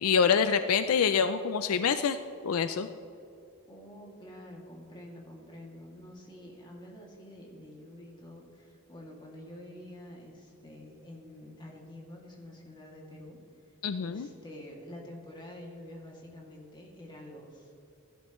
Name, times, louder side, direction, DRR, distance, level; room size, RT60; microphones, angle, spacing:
voice 1, 0.0-2.2 2.4-2.9 13.8-14.3, left 6 dB, 70° left, 10 dB, 0.4 m, -26 dB
voice 2, 3.7-13.4 14.0-17.7, left 1 dB, 20° left, -2 dB, 2.4 m, -48 dB
16.5 x 12.0 x 3.1 m, 2.8 s
head